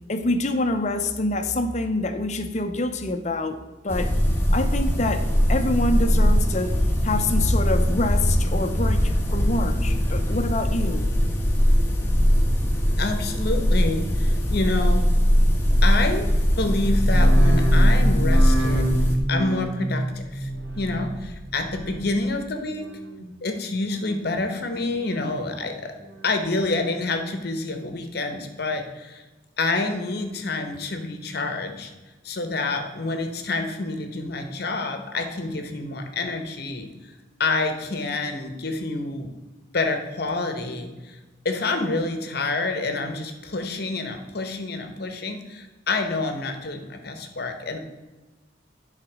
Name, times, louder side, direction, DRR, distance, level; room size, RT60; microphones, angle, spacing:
voice 1, 0.1-4.1 4.5-6.7 7.0-11.1, left 2 dB, 35° left, 8 dB, 0.7 m, -26 dB
sound 1, 3.9-19.2, equal, 10° left, 1.1 m, -20 dB
voice 2, 13.0-15.1 15.8-16.3 16.6-18.9 19.3-20.5 20.8-22.9 23.4-25.9 26.2-29.2 29.6-31.9 32.2-36.9 37.4-39.3 39.7-41.2 41.4-47.8, left 3 dB, 50° left, 6 dB, 1.0 m, -27 dB
sound 2, 17.0-22.3 22.6-23.2 23.7-24.4 24.8-25.5 25.9-26.6 27.0-27.6 28.1-28.2, right 1 dB, 75° right, 1.8 m, -29 dB
11.0 x 4.1 x 6.1 m, 1.2 s
head